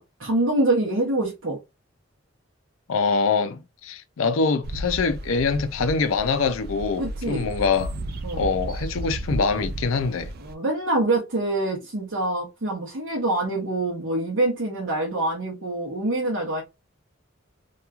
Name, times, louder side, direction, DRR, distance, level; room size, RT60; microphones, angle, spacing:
voice 1, 0.0-1.6 7.0-7.5 8.2-8.5 10.4-16.6, right 2 dB, 65° right, 0.8 m, -25 dB
voice 2, 2.9-8.0 8.3-10.3, left 4 dB, 75° left, 0.4 m, -24 dB
sound 1, 4.6-10.5, right 1 dB, 45° right, 0.3 m, -34 dB
2.9 x 2.3 x 2.3 m
head